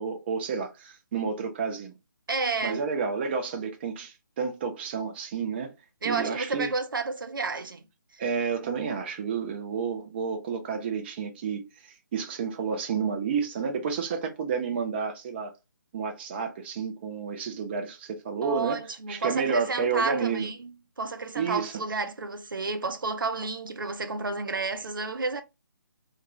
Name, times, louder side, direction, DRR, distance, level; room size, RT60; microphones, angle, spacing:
voice 1, 0.0-1.9 2.6-5.7 6.0-6.7 8.2-15.5 15.9-18.8 19.1-20.5 21.3-21.7, right 5 dB, 30° right, 0.5 m, -30 dB
voice 2, 2.3-2.8 6.0-7.8 8.1-8.2 18.4-25.4, right 4 dB, 75° right, 0.6 m, -31 dB
2.4 x 2.4 x 2.9 m
figure-of-eight pair, 145°, 11 cm